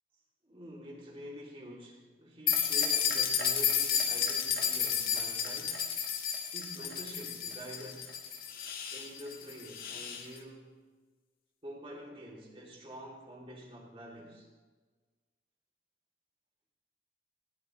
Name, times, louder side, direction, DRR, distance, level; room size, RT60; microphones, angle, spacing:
voice 1, 0.4-5.9 6.5-8.2 8.9-10.8 11.6-14.5, equal, 30° right, -2 dB, 3.5 m, -47 dB
sound 1, 2.5-10.2, left 7 dB, 55° left, 1.9 m, -32 dB
19.0 x 18.5 x 3.4 m, 1.3 s
head